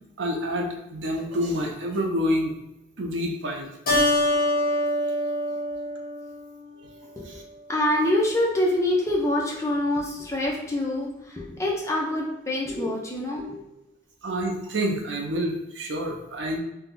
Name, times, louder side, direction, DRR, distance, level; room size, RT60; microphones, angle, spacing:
voice 1, 0.2-2.5 3.0-3.7 7.3-7.4 14.2-16.6, equal, 85° right, 2 dB, 0.6 m, -28 dB
Keyboard (musical), 3.9-6.7, left 1 dB, 50° left, 1.1 m, -25 dB
voice 2, 7.7-13.6, left 1 dB, 15° left, -1 dB, 0.5 m, -25 dB
2.6 x 2.2 x 3.7 m, 0.91 s
head